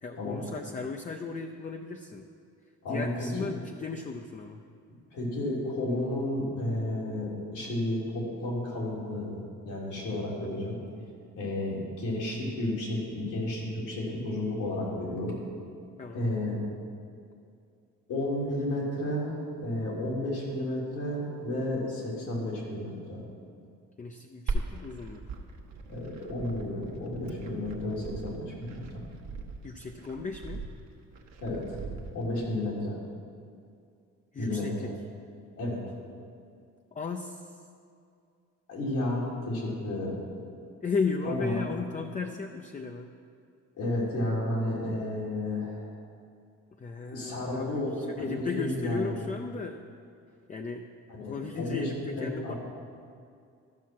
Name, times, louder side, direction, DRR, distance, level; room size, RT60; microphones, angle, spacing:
voice 1, 0.0-2.3 2.9-4.6 10.4-10.5 16.0-16.3 24.0-25.2 29.6-30.6 34.3-34.9 36.9-37.7 40.8-43.1 46.8-49.8 50.5-50.9 51.2-52.5, left 4 dB, 25° left, 4 dB, 0.5 m, -35 dB
voice 2, 2.8-3.3 5.1-9.3 9.6-10.8 11.4-15.3 16.1-16.6 18.1-23.2 25.9-29.0 31.4-31.8 32.1-33.0 34.4-34.9 35.6-36.0 38.7-40.2 41.3-41.6 43.8-46.0 47.1-47.9 48.2-49.3 51.1-52.6, left 1 dB, 85° left, -5 dB, 3.1 m, -32 dB
Glass, 24.5-32.4, right 3 dB, 65° right, 1.2 m, -39 dB
12.5 x 6.1 x 5.9 m, 2.4 s
cardioid pair, 90°, 30 cm